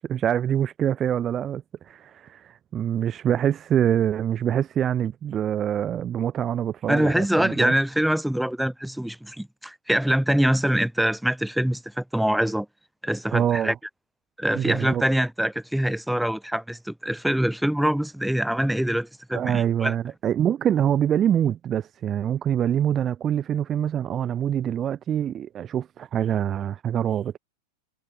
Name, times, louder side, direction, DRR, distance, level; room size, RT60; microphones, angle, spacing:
voice 1, 0.1-7.7 13.3-13.7 14.5-15.0 19.3-27.4, right 10 dB, 25° right, 5.2 m, -25 dB
voice 2, 6.9-12.7 13.0-13.7 14.4-19.9, right 1 dB, ahead, 7.7 m, -24 dB
figure-of-eight pair, 90°, 0 cm